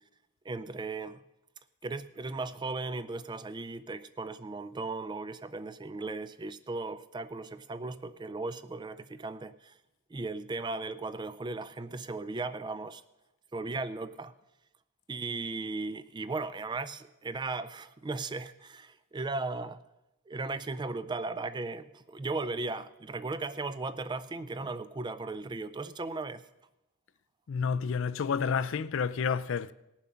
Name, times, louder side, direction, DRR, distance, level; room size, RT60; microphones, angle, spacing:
voice 1, 0.5-1.2 1.8-9.7 10.1-13.0 13.5-14.3 15.1-19.8 20.3-26.4, right 3 dB, 20° right, 0.3 m, -37 dB
voice 2, 27.5-29.7, left 6 dB, 60° left, 0.4 m, -30 dB
18.0 x 7.3 x 5.7 m
head